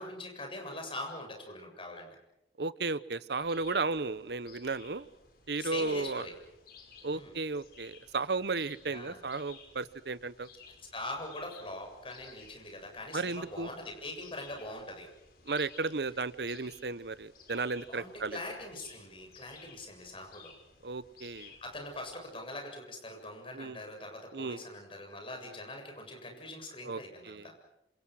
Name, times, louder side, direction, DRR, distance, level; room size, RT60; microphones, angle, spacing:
voice 1, 0.0-2.1 5.6-6.3 7.1-7.4 8.8-9.2 10.9-15.1 17.9-20.5 21.4-27.5, left 1 dB, 30° left, 3 dB, 7.3 m, -43 dB
voice 2, 2.6-5.1 5.5-6.3 7.0-10.5 13.1-13.7 15.5-18.4 20.8-21.5 23.5-23.8 24.3-24.6 26.8-27.5, right 3 dB, 70° right, 16 dB, 0.9 m, -34 dB
sound 1, 3.4-22.3, left 5 dB, 55° left, 5.1 m, -57 dB
27.5 x 27.0 x 6.4 m, 0.88 s
head